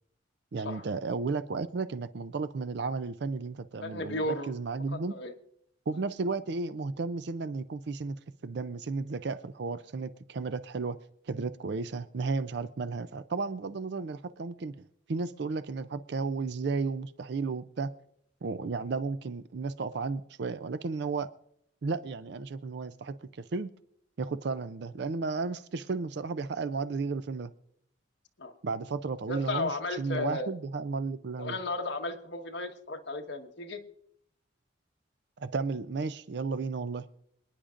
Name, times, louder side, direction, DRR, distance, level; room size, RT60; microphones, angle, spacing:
voice 1, 0.5-5.2 5.9-8.2 8.4-11.0 11.3-14.7 15.1-17.9 18.4-21.3 21.8-23.1 23.5-23.7 24.2-27.5 28.6-29.7 30.0-31.6 35.4-37.1, right 4 dB, 60° right, 0.4 m, -33 dB
voice 2, 3.8-4.5 4.9-5.3 5.9-6.0 28.4-28.5 29.3-30.5 31.4-33.8, left 2 dB, 60° left, 1.3 m, -34 dB
27.0 x 10.0 x 2.5 m
head